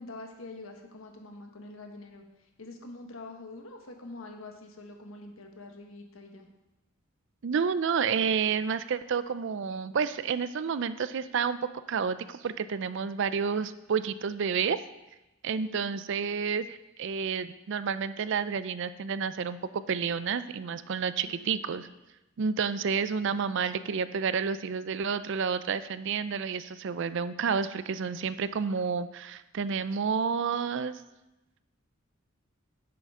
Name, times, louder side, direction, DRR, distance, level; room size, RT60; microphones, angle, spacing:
voice 1, 0.0-2.2 2.6-6.5 15.6-15.9 21.2-21.6, left 2 dB, 85° left, 3 dB, 1.3 m, -45 dB
voice 2, 7.4-14.8 15.4-21.9 22.4-31.0, right 6 dB, 60° right, 13 dB, 0.4 m, -30 dB
10.5 x 7.7 x 3.7 m, 1.0 s
head